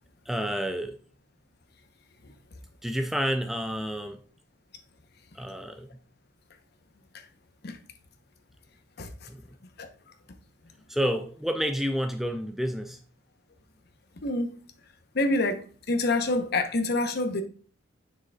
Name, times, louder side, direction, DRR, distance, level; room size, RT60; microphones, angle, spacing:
voice 1, 0.3-1.0 2.8-4.2 5.3-5.9 9.3-9.5 10.9-13.0, equal, ahead, 0.3 m, -29 dB
voice 2, 15.1-17.4, left 2 dB, 55° left, 0.8 m, -26 dB
7.1 x 6.2 x 2.3 m
head